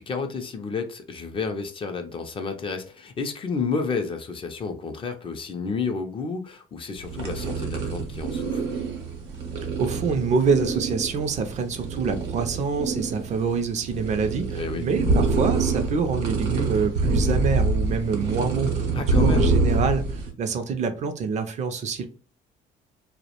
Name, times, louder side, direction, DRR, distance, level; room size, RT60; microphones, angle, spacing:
voice 1, 0.0-8.6 14.6-14.8 18.9-19.5, left 4 dB, 30° left, 6 dB, 0.4 m, -31 dB
sound 1, 6.9-20.3, right 3 dB, 85° right, 0.7 m, -25 dB
voice 2, 9.8-22.1, right 5 dB, 45° right, 8 dB, 0.4 m, -26 dB
2.3 x 2.0 x 2.8 m, 0.37 s
cardioid pair, 110°, 17 cm